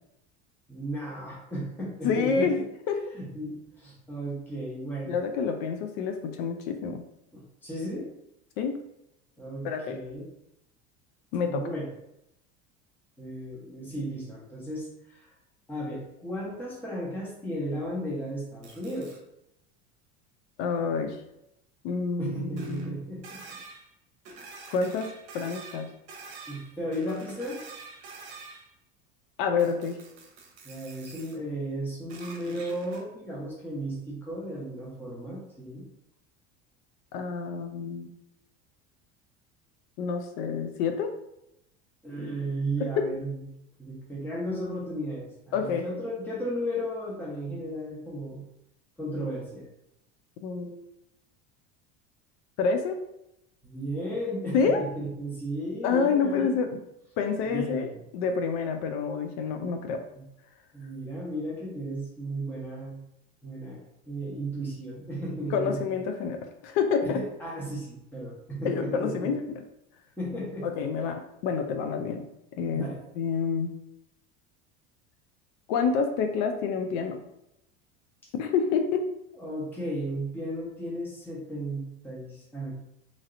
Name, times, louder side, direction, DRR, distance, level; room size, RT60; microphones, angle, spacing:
voice 1, 0.7-2.6 3.1-5.1 7.3-8.1 9.4-10.3 11.5-11.9 13.2-15.3 15.7-19.2 22.2-23.6 26.5-27.6 30.6-35.9 42.0-43.5 43.8-48.5 49.0-49.7 53.6-56.5 57.4-58.0 60.1-60.2 60.7-63.0 63.4-66.0 67.0-69.3 70.2-70.7 72.7-73.0 79.3-82.7, right 1 dB, 5° left, -5 dB, 0.9 m, -35 dB
voice 2, 2.0-2.6 2.9-3.0 5.1-7.0 8.6-8.8 9.6-10.0 11.3-11.6 20.6-21.2 21.8-23.0 24.7-25.9 27.1-27.2 29.4-30.0 37.1-38.1 40.0-41.1 42.8-42.9 45.5-45.8 50.4-50.9 52.6-53.0 54.5-54.8 55.8-56.7 57.2-57.9 58.1-60.0 65.5-67.2 68.6-69.4 70.6-72.2 72.5-72.9 73.2-73.7 75.7-77.2 78.3-79.1, left 5 dB, 70° left, 6 dB, 0.5 m, -28 dB
sound 1, 18.6-19.2 22.6-22.9 23.2-23.9 24.2-28.7 29.6-31.4 32.1-33.0, right 4 dB, 50° right, 0.8 m, -46 dB
3.0 x 2.8 x 2.5 m, 0.84 s
supercardioid pair, 105°, 32 cm